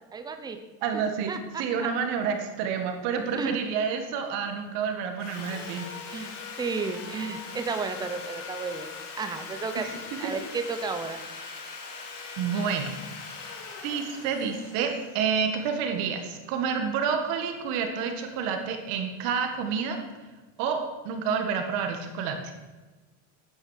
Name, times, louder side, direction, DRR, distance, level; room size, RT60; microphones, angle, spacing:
voice 1, 0.1-0.6 1.3-1.9 3.3-3.6 6.1-6.3 6.6-8.9 9.2-11.2, right 4 dB, 10° right, 8 dB, 0.8 m, -33 dB
voice 2, 0.8-5.8 9.8-9.9 10.2-10.3 12.4-12.9 13.8-20.0 20.6-22.5, right 6 dB, 50° right, 5 dB, 1.9 m, -29 dB
Sawing, 5.2-16.2, left 5 dB, 80° left, 3.3 m, -41 dB
13.5 x 9.8 x 6.6 m, 1.3 s
cardioid pair, 175°, 37 cm